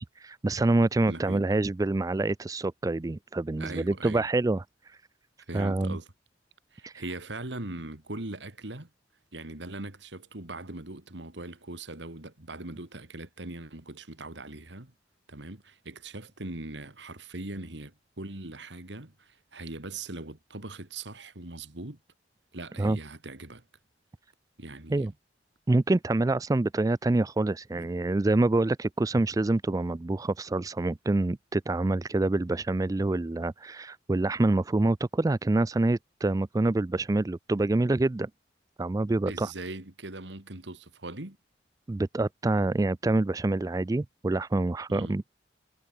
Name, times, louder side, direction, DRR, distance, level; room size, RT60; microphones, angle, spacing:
voice 1, 0.0-5.0 5.5-6.0 6.8-6.9 22.8-23.0 24.9-25.1 25.7-38.3 38.8-39.5 41.9-45.3, right 2 dB, 20° right, 0.3 m, -26 dB
voice 2, 1.1-1.4 3.6-4.3 5.5-6.1 6.7-8.9 9.3-14.9 15.3-22.0 22.5-23.6 24.6-25.1 27.7-28.2 39.3-41.4 44.9-45.2, right 2 dB, 70° right, 2.6 m, -40 dB
head